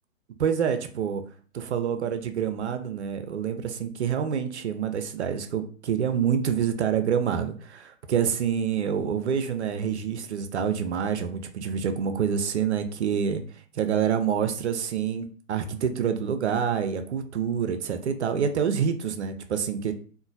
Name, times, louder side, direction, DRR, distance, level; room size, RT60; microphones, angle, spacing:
voice 1, 0.4-1.2 1.5-13.4 13.8-19.9, right 7 dB, 55° right, 8 dB, 0.5 m, -27 dB
2.9 x 2.1 x 2.5 m, 0.43 s
figure-of-eight pair, 120°, 40 cm